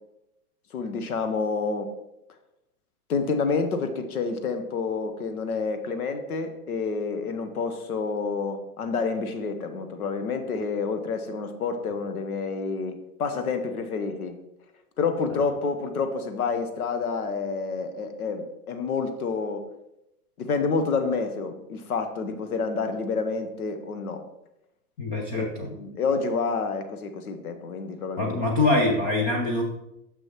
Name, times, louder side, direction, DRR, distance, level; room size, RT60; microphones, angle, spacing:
voice 1, 0.7-1.9 3.1-14.4 15.0-19.7 20.4-24.3 25.3-28.3, left 4 dB, 70° left, 9 dB, 1.0 m, -28 dB
voice 2, 25.0-25.7 28.2-29.6, left 2 dB, 15° left, 0 dB, 0.3 m, -24 dB
6.4 x 6.0 x 3.0 m, 0.86 s
figure-of-eight pair, 105°, 46 cm